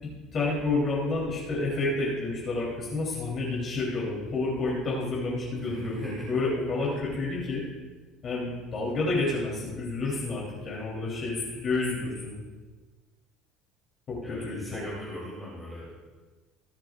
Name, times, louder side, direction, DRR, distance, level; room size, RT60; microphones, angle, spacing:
voice 1, 0.3-7.6 8.2-12.4 14.1-14.8, left 2 dB, 40° left, -5 dB, 3.3 m, -29 dB
voice 2, 5.6-6.3 6.8-6.9 14.2-16.0, left 1 dB, ahead, -7 dB, 3.1 m, -40 dB
21.0 x 7.7 x 2.5 m, 1.3 s
cardioid pair, 125°, 0 cm